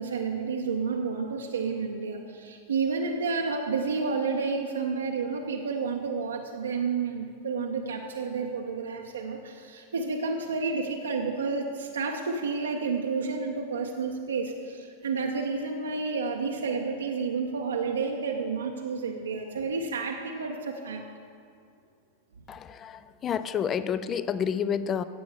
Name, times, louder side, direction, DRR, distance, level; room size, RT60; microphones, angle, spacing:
voice 1, 0.0-21.0, right 4 dB, 70° right, 2 dB, 0.7 m, -30 dB
voice 2, 22.5-25.0, left 7 dB, 25° left, 14 dB, 0.4 m, -29 dB
15.5 x 7.0 x 3.5 m, 2.3 s
figure-of-eight pair, 90°, 0 cm